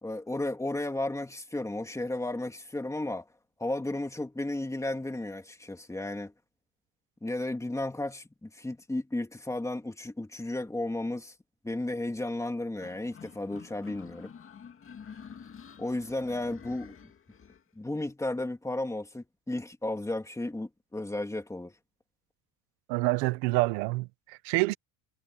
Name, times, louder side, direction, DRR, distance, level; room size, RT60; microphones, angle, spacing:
voice 1, 0.0-3.3 3.6-6.3 7.2-11.3 11.6-14.3 15.8-17.0 17.7-21.7, left 2 dB, 5° left, 2.9 m, -34 dB
sound 1, 12.8-17.6, left 7 dB, 25° left, 2.4 m, -49 dB
voice 2, 22.9-24.7, right 22 dB, 90° right, 1.5 m, -27 dB
cardioid pair, 140°, 49 cm